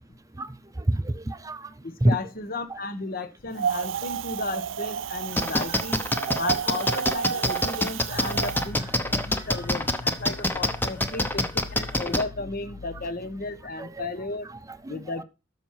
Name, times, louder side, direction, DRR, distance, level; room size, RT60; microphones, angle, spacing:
voice 1, 0.9-1.6 2.0-2.2 2.7-2.8 6.2-6.6 9.1-9.2 11.1-11.2 13.8-14.1 14.5-15.2, right 1 dB, 20° right, 13 dB, 0.6 m, -28 dB
voice 2, 1.8-6.0 6.4-14.5 14.9-15.2, left 3 dB, 50° left, 11 dB, 1.1 m, -34 dB
Wind, 3.6-8.7, right 7 dB, 90° right, 0.5 m, -31 dB
sound 1, 5.4-12.2, left 1 dB, 10° left, 0.9 m, -24 dB
sound 2, 8.1-14.0, left 3 dB, 80° left, 0.6 m, -41 dB
13.0 x 5.8 x 4.7 m, 0.30 s
head